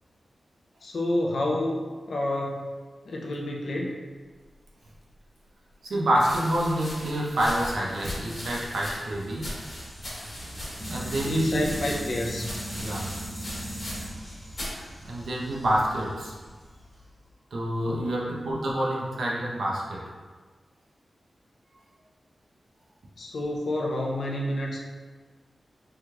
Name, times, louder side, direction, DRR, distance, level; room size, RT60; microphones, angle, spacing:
voice 1, 0.8-2.7 3.1-4.0 11.2-12.4 17.9-18.4 23.2-24.8, left 1 dB, 65° left, -1 dB, 0.4 m, -29 dB
sound 1, 5.1-5.2 6.1-14.3 14.5-14.8 15.6-16.0, left 1 dB, 50° left, 1.1 m, -39 dB
voice 2, 5.8-9.5 10.9-11.6 12.7-13.1 15.0-16.4 17.5-20.0, right 1 dB, 85° right, -4 dB, 0.7 m, -27 dB
sound 2, 9.1-17.2, right 1 dB, 15° left, 1.1 m, -39 dB
3.4 x 2.9 x 2.3 m, 1.4 s
wide cardioid pair, 120°, 0 cm